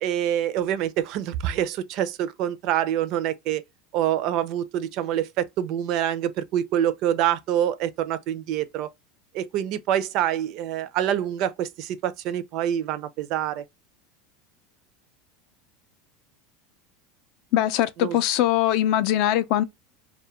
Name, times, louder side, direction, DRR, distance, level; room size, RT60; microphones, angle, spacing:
voice 1, 0.0-3.6 3.9-8.9 9.3-13.6 18.0-18.2, right 11 dB, 50° right, 0.3 m, -26 dB
voice 2, 17.5-19.6, left 12 dB, 55° left, 0.3 m, -21 dB
2.2 x 2.1 x 2.9 m
supercardioid pair, 150°, 0 cm